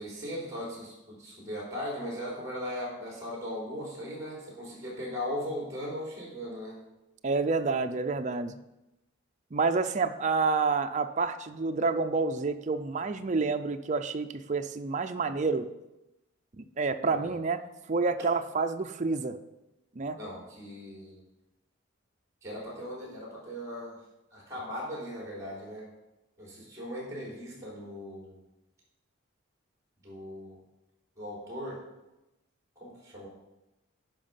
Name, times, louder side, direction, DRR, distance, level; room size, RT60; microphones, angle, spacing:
voice 1, 0.0-6.8 17.1-17.3 20.2-21.2 22.4-24.0 24.3-25.9 26.4-28.4 30.0-30.6 31.2-31.8 32.8-33.3, equal, 15° right, -4 dB, 3.7 m, -38 dB
voice 2, 7.2-8.6 9.5-15.7 16.6-17.6 17.9-19.4 20.0-20.2, right 4 dB, 35° right, 7 dB, 0.5 m, -28 dB
10.5 x 5.1 x 5.7 m, 0.97 s
head